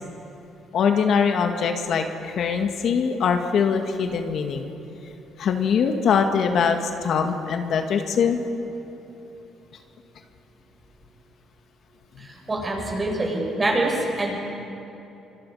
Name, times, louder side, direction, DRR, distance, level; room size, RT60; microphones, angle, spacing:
voice 1, 0.7-4.7 5.4-8.4 12.2-12.3, left 6 dB, 65° left, 5 dB, 1.8 m, -22 dB
voice 2, 12.2-14.3, right 2 dB, 25° right, -2 dB, 7.9 m, -25 dB
26.0 x 25.5 x 5.6 m, 3.0 s
cardioid pair, 95°, 0 cm